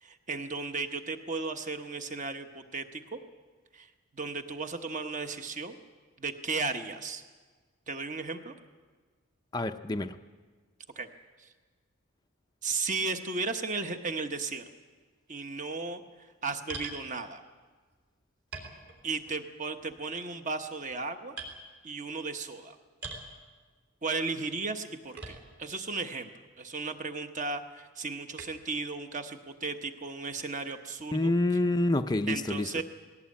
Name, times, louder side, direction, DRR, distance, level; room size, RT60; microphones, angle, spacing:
voice 1, 0.0-3.2 3.7-5.7 6.2-7.2 7.9-8.5 11.0-11.1 11.4-11.5 12.6-14.6 15.3-16.0 16.4-17.4 19.0-21.4 21.8-22.8 24.0-26.3 26.6-31.3 32.3-32.8, right 4 dB, 35° right, 7 dB, 1.1 m, -35 dB
voice 2, 9.5-10.2 31.1-32.7, left 2 dB, 20° left, 7 dB, 0.5 m, -27 dB
sound 1, 16.7-17.0 17.9-18.0 18.5-19.3 19.7-20.1 20.7-21.0 21.4-21.6 23.0-23.3 25.2-25.7 26.4-26.5 28.4-28.7, right 3 dB, 50° right, 3.6 m, -42 dB
19.0 x 17.0 x 8.6 m, 1.5 s
head